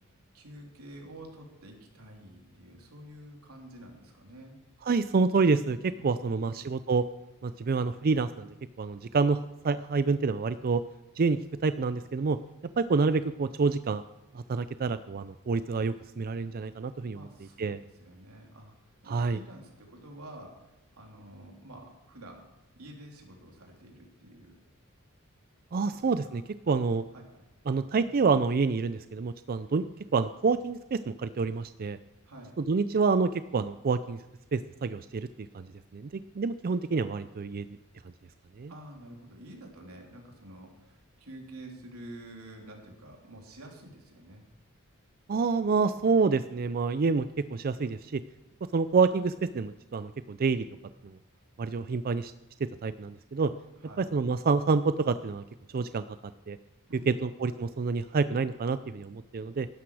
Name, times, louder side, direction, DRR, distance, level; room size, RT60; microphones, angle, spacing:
voice 1, 0.3-4.6 6.0-6.6 17.1-18.7 19.0-22.5 22.7-24.6 26.0-26.4 26.7-26.8 27.1-27.5 32.2-32.6 38.7-44.5 53.8-54.1 56.9-57.2, right 1 dB, 90° right, 0 dB, 3.4 m, -49 dB
voice 2, 4.8-7.1 7.4-8.5 8.8-9.4 9.6-10.8 11.2-11.4 11.6-12.4 12.8-14.0 14.3-17.2 17.6-17.8 19.1-19.4 25.7-26.4 26.7-27.0 27.7-29.9 30.1-32.0 32.6-34.2 34.5-35.6 35.9-37.7 38.6-38.7 45.3-47.2 47.5-48.2 48.7-50.7 51.0-51.2 51.6-52.3 52.8-53.5 54.0-55.4 55.7-56.0 56.5-56.6 57.1-59.7, right 4 dB, 45° right, 13 dB, 0.4 m, -27 dB
16.5 x 12.0 x 4.8 m, 1.0 s
head